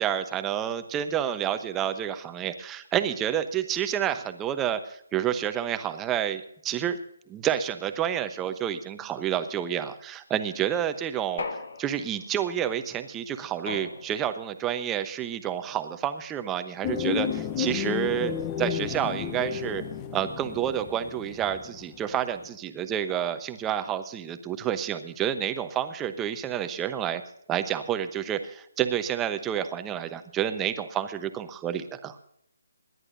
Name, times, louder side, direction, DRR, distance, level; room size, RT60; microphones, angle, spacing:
voice 1, 0.0-7.0 7.3-11.4 11.8-18.3 18.6-19.8 20.1-27.2 27.5-32.2, right 10 dB, 15° right, 9 dB, 0.9 m, -29 dB
sound 1, 11.4-12.4 13.7-14.5, left 4 dB, 60° left, 1.5 m, -37 dB
sound 2, 16.8-22.2 22.4-22.5, left 8 dB, 20° left, 0.8 m, -32 dB
28.0 x 11.0 x 2.7 m, 0.68 s
figure-of-eight pair, 150°, 0 cm